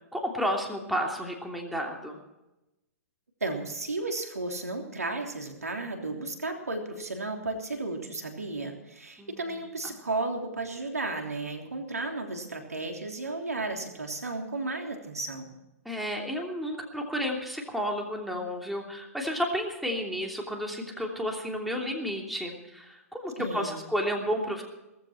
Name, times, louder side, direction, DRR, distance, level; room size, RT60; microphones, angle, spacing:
voice 1, 0.1-2.2 9.2-9.4 9.8-9.9 15.8-24.6, equal, ahead, 0 dB, 3.1 m, -32 dB
voice 2, 3.4-15.5 23.4-23.8, right 2 dB, 85° right, 3 dB, 3.3 m, -34 dB
18.0 x 15.0 x 4.4 m, 0.95 s
figure-of-eight pair, 115°, 8 cm